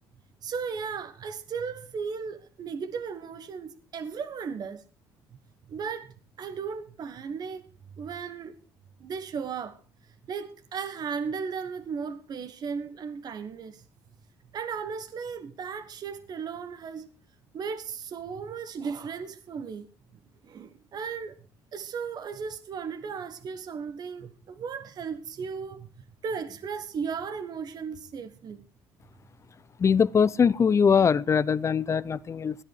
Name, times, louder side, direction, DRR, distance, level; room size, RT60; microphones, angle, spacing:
voice 1, 0.4-4.8 5.7-7.6 8.0-8.6 9.0-9.8 10.3-13.8 14.5-17.1 17.5-19.9 20.4-21.3 21.7-28.6, right 6 dB, 50° right, 1.3 m, -36 dB
voice 2, 29.8-32.6, left 6 dB, 35° left, 0.7 m, -22 dB
16.5 x 10.5 x 4.8 m
supercardioid pair, 85°, 9 cm